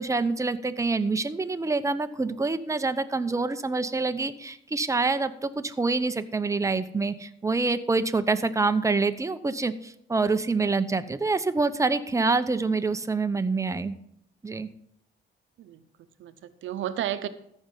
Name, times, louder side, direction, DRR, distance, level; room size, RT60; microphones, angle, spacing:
voice 1, 0.0-13.9 14.4-14.7, right 3 dB, 15° right, 10 dB, 0.7 m, -26 dB
voice 2, 15.6-17.3, right 11 dB, 75° right, 11 dB, 0.8 m, -33 dB
14.0 x 5.4 x 5.5 m, 0.75 s
cardioid pair, 90°, 20 cm